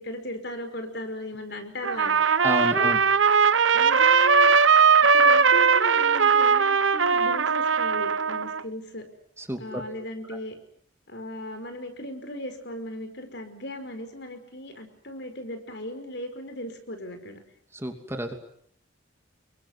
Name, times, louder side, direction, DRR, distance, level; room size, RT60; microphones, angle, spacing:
voice 1, 0.0-2.2 2.6-3.0 3.7-4.6 5.1-9.1 9.6-10.6 11.1-17.4, left 1 dB, 60° left, 7 dB, 5.2 m, -37 dB
Trumpet, 1.8-8.6, right 5 dB, 80° right, 1.1 m, -19 dB
voice 2, 2.4-3.0 9.4-9.8 17.7-18.3, right 1 dB, 15° right, 5 dB, 2.7 m, -30 dB
28.5 x 23.0 x 8.1 m, 0.64 s
head